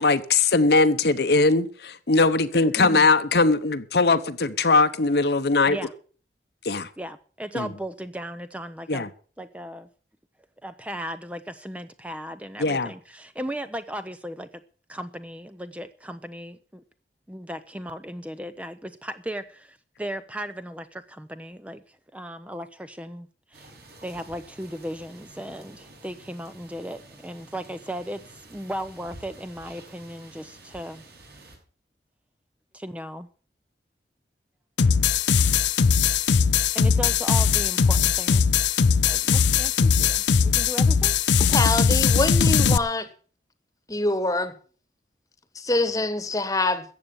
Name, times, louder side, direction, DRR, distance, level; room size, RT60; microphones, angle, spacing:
voice 1, 0.0-5.8 6.6-6.9 7.5-7.7 8.9-9.1 12.6-12.9, left 3 dB, 65° left, 0.9 m, -20 dB
voice 2, 2.8-3.1 5.6-5.9 7.0-9.1 9.4-9.9 10.6-14.6 14.9-16.8 17.3-23.7 24.0-31.0 32.7-33.3 36.7-38.5 39.0-41.2, equal, 5° right, 0.5 m, -36 dB
sound 1, 23.5-31.6, right 2 dB, 65° right, 6.3 m, -49 dB
sound 2, 34.8-42.8, left 6 dB, 85° left, 0.6 m, -20 dB
voice 3, 41.5-43.1 43.9-44.5 45.5-46.8, left 2 dB, 20° left, 1.3 m, -25 dB
14.0 x 8.2 x 7.0 m
head